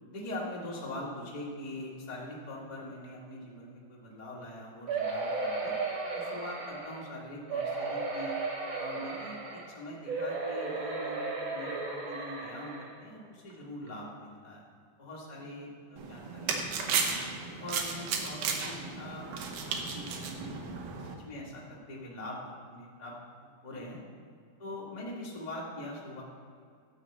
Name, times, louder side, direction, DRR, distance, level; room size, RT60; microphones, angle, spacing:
voice 1, 0.1-5.7 6.1-8.4 8.8-14.6 15.0-17.2 17.6-23.1 23.6-24.0 24.6-26.2, left 1 dB, 20° left, -4 dB, 1.0 m, -43 dB
sound 1, 4.9-7.0 7.5-9.7 10.1-12.9 13.5-13.6 13.9-14.0, right 3 dB, 40° right, 1.9 m, -35 dB
sound 2, 16.0-21.1, right 5 dB, 70° right, 2.3 m, -34 dB
12.5 x 4.8 x 7.5 m, 2.2 s
omnidirectional pair, 4.1 m